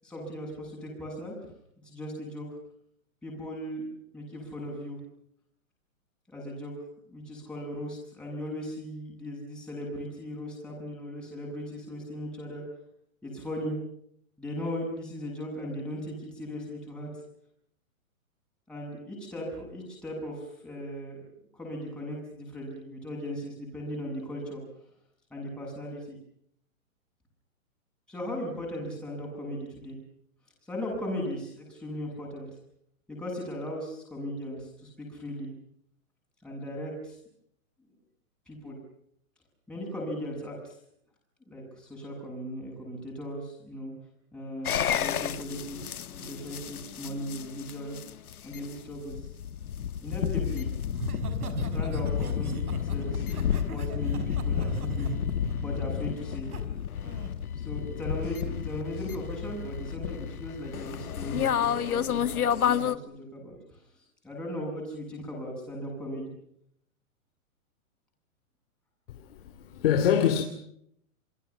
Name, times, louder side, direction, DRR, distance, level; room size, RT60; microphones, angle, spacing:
voice 1, 0.0-1.3 1.8-2.5 3.2-3.9 4.1-5.0 6.3-6.7 7.1-12.6 13.2-13.8 14.4-17.1 18.7-21.2 21.5-24.6 25.3-26.2 28.1-30.0 30.7-32.5 33.1-35.5 36.4-37.2 38.5-38.8 39.7-40.8 41.5-43.9 44.3-48.0 48.4-49.3 50.0-50.7 51.7-53.2 53.7-55.1 55.6-56.5 57.6-63.8 64.2-66.3, equal, ahead, 7.9 m, -37 dB
sound 1, 44.7-63.0, left 9 dB, 85° left, 1.5 m, -31 dB
Laughter, 50.9-56.6 57.0-57.3, right 6 dB, 90° right, 4.9 m, -38 dB
voice 2, 69.1-70.4, left 9 dB, 40° left, 3.2 m, -25 dB
29.0 x 23.0 x 7.2 m
hypercardioid pair, 165°, 43 cm